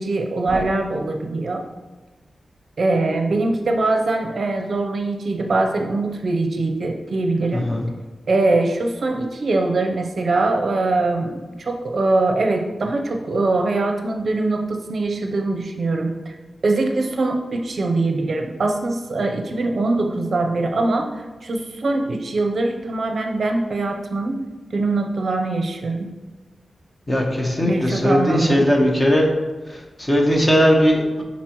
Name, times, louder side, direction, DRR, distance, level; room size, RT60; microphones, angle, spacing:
voice 1, 0.0-1.6 2.8-7.7 8.3-16.4 16.6-24.4 24.7-26.1 27.4-28.7, right 2 dB, 55° right, 4 dB, 0.6 m, -22 dB
voice 2, 7.5-7.8 27.1-29.3 29.7-31.2, equal, 20° left, 0 dB, 1.1 m, -18 dB
10.5 x 4.1 x 3.0 m, 1.2 s
wide cardioid pair, 150°, 0 cm